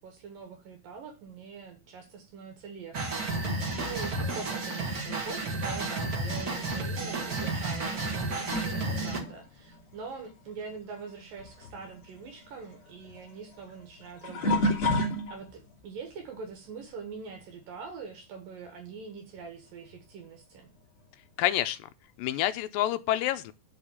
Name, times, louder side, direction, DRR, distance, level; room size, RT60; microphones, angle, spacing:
voice 1, 0.0-14.9 15.3-20.7, right 5 dB, 70° right, 3.2 m, -44 dB
sound 1, 2.9-9.2, right 3 dB, 50° right, 1.0 m, -32 dB
sound 2, 3.1-11.1 11.4-15.7 16.3-16.7 18.9-19.0 19.9-20.0, left 1 dB, 40° left, 3.2 m, -35 dB
voice 2, 21.4-21.9 22.2-23.5, left 13 dB, 80° left, 2.2 m, -28 dB
6.6 x 5.9 x 7.0 m
omnidirectional pair, 4.2 m